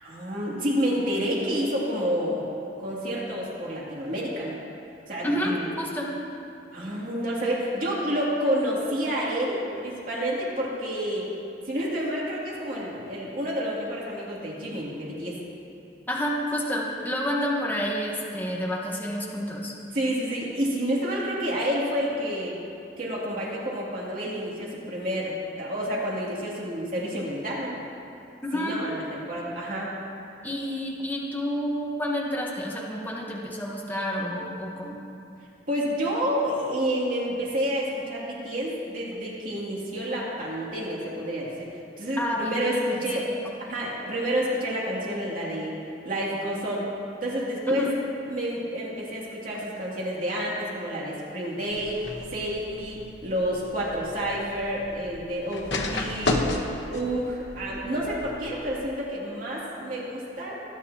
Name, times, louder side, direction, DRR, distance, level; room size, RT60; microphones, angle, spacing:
voice 1, 0.0-2.4 2.8-4.6 5.1-5.7 6.7-11.3 11.7-15.4 19.9-22.5 23.0-27.7 28.5-29.9 35.7-43.3 43.6-45.8 46.0-46.9 47.2-47.8 48.3-52.0 52.3-56.5 56.9-60.6, equal, 50° right, -5 dB, 2.5 m, -29 dB
voice 2, 5.2-6.1 16.1-19.7 28.4-28.8 30.4-35.0 42.2-43.2, equal, 10° left, -3 dB, 1.3 m, -29 dB
sound 1, 51.7-58.9, left 2 dB, 85° left, 1.1 m, -33 dB
20.5 x 9.8 x 2.8 m, 2.7 s
head